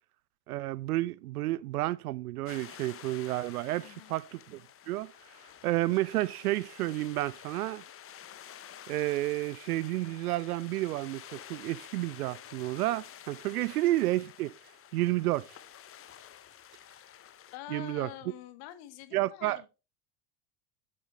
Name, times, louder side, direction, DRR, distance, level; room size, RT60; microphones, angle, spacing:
voice 1, 0.5-4.6 4.9-5.1 5.6-7.8 8.9-14.5 14.9-15.5 17.7-18.1 19.1-19.6, right 17 dB, 65° right, 0.6 m, -31 dB
sound 1, 2.5-17.6, left 10 dB, 30° left, 1.0 m, -50 dB
voice 2, 3.8-4.1 13.5-13.7 17.0-17.1 17.5-19.7, left 14 dB, 50° left, 1.5 m, -46 dB
11.5 x 7.6 x 3.2 m
figure-of-eight pair, 75°, 48 cm